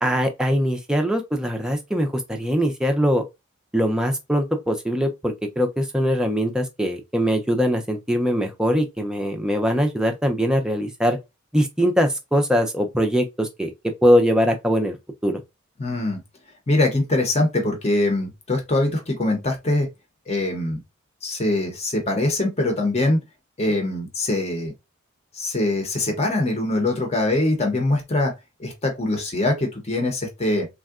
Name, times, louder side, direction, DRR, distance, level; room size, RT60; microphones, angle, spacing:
voice 1, 0.0-3.2 3.7-11.2 11.5-13.7 14.0-15.0 15.2-15.4, equal, 5° right, 0.4 m, -22 dB
voice 2, 15.8-16.2 16.7-19.9 20.3-20.8 21.2-23.2 23.6-24.7 25.3-28.3 28.6-30.7, left 2 dB, 30° left, 0.7 m, -23 dB
3.5 x 2.1 x 2.3 m
head